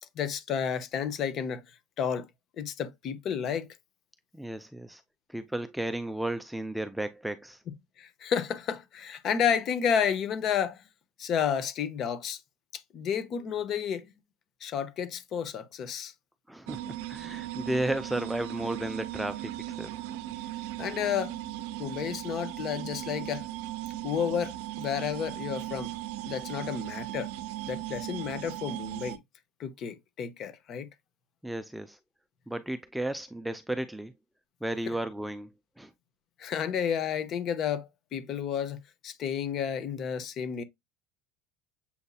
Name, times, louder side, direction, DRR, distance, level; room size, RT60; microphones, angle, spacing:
voice 1, 0.2-1.6 2.0-2.3 2.6-3.7 8.0-10.8 11.2-12.4 12.9-14.1 14.6-16.1 20.8-21.4 21.8-23.5 24.0-25.9 26.3-27.3 27.7-29.2 29.6-30.9 34.9-35.0 36.4-40.6, left 8 dB, 40° left, 0.7 m, -31 dB
voice 2, 4.3-5.0 5.3-7.6 16.5-19.5 19.8-19.9 31.4-32.0 32.5-34.1 34.6-35.5 35.8-35.9, right 1 dB, 5° right, 0.4 m, -33 dB
sound 1, 16.7-29.2, right 14 dB, 70° right, 0.5 m, -38 dB
7.0 x 2.7 x 2.3 m
supercardioid pair, 135°, 0 cm